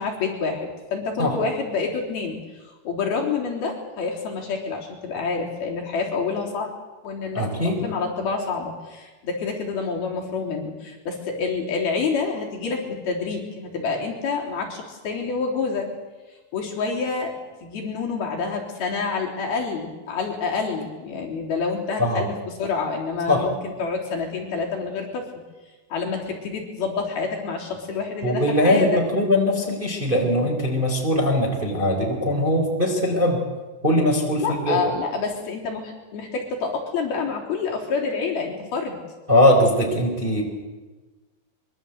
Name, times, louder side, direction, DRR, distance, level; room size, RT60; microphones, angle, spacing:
voice 1, 0.0-2.4 2.9-6.7 7.0-15.9 16.5-17.3 17.6-25.3 25.9-29.0 34.4-39.0, left 4 dB, 55° left, -1 dB, 5.4 m, -28 dB
voice 2, 7.3-7.9 22.0-22.2 23.3-23.5 28.2-33.4 33.8-34.8 39.3-40.4, left 1 dB, 10° right, 1 dB, 3.5 m, -21 dB
24.5 x 23.5 x 8.1 m, 1.2 s
omnidirectional pair, 5.2 m